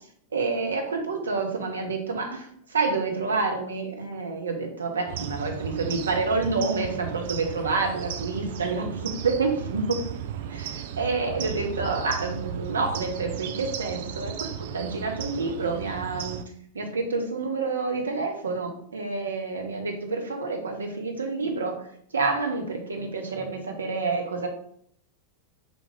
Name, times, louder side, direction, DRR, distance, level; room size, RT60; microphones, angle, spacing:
voice 1, 0.3-10.0 10.5-16.4 16.7-21.8 22.1-24.5, right 4 dB, 70° right, 3 dB, 0.8 m, -28 dB
sound 1, 5.1-16.4, right 8 dB, 55° right, 0.3 m, -35 dB
3.9 x 3.0 x 3.7 m, 0.66 s
figure-of-eight pair, 90°, 0 cm